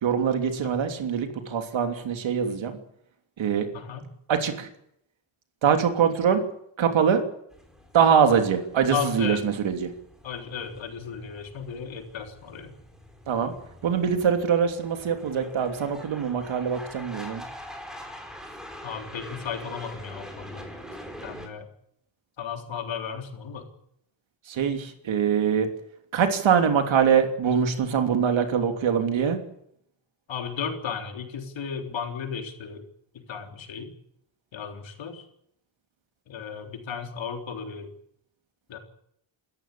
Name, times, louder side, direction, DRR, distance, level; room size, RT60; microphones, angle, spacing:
voice 1, 0.0-2.8 3.4-3.7 4.3-4.7 5.6-6.4 6.8-7.2 7.9-9.9 13.3-13.5 13.8-17.4 24.5-25.7 26.1-29.4, right 7 dB, 80° right, 6 dB, 3.1 m, -23 dB
sound 1, 7.5-21.5, equal, ahead, 4.8 m, -45 dB
voice 2, 8.9-9.4 10.2-12.7 18.8-20.7 21.2-21.7 22.4-23.6 30.3-32.8 33.3-33.9 34.5-35.2 36.3-37.9 38.7-38.8, left 6 dB, 75° left, 3 dB, 3.8 m, -34 dB
27.5 x 14.0 x 8.5 m, 0.74 s
wide cardioid pair, 125°, 46 cm